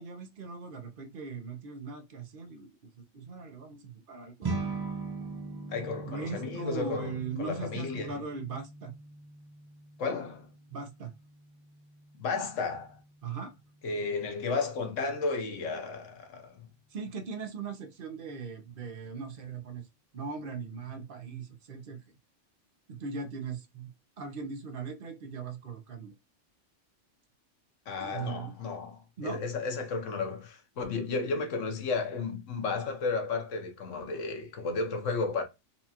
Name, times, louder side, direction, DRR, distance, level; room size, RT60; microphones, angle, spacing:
voice 1, 0.0-2.7 3.0-4.6 6.0-8.9 10.7-11.1 13.2-13.5 16.9-19.8 20.1-22.0 22.9-23.9 24.2-26.1 28.0-28.5 29.2-29.4, right 5 dB, 50° right, 0.8 m, -39 dB
Open strs, 4.4-13.9, right 3 dB, 35° right, 0.3 m, -41 dB
voice 2, 5.7-8.2 10.0-10.5 12.2-13.0 13.8-16.6 27.9-35.4, left 4 dB, 85° left, 1.2 m, -33 dB
4.3 x 2.3 x 2.8 m
omnidirectional pair, 1.2 m